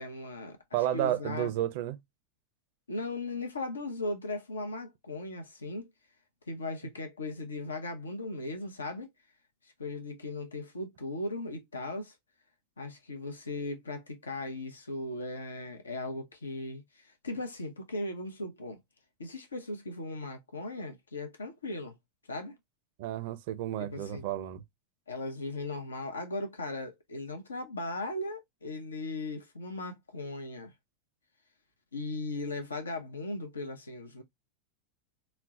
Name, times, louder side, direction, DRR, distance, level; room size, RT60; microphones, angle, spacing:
voice 1, 0.0-0.6 0.9-1.5 2.9-5.9 6.5-9.1 9.6-12.2 12.8-18.8 19.2-22.0 22.3-22.6 23.8-24.3 25.1-30.7 31.9-34.2, left 2 dB, 85° left, 0.6 m, -38 dB
voice 2, 0.7-2.0 23.0-24.6, right 12 dB, 60° right, 0.5 m, -31 dB
4.1 x 2.0 x 2.3 m
hypercardioid pair, 95°, 0 cm